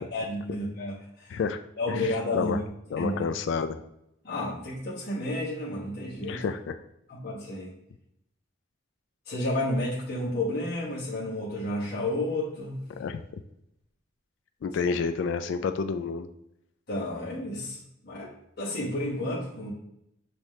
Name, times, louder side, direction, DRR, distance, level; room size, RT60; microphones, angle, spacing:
voice 1, 0.1-1.4 1.8-2.6 3.0-3.2 4.2-6.4 7.1-7.7 9.3-12.8 16.9-18.3 18.6-19.7, left 1 dB, 50° left, -8 dB, 1.2 m, -31 dB
voice 2, 1.3-1.6 1.9-2.6 2.9-3.8 6.3-6.8 13.0-13.2 14.6-16.3, left 5 dB, 70° left, 9 dB, 0.3 m, -29 dB
5.5 x 3.0 x 3.1 m, 0.79 s
head